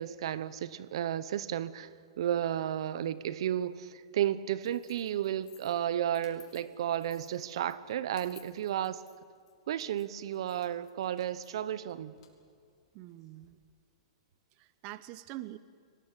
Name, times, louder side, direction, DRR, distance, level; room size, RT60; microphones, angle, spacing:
voice 1, 0.0-1.9 2.2-9.0 9.7-12.2, right 11 dB, 65° right, 16 dB, 1.0 m, -33 dB
sound 1, 4.6-13.5, left 9 dB, 60° left, 4.5 m, -61 dB
voice 2, 12.9-13.6 14.5-15.6, right 16 dB, 40° right, 15 dB, 0.9 m, -45 dB
23.5 x 19.0 x 9.0 m, 2.2 s
hypercardioid pair, 125°, 3 cm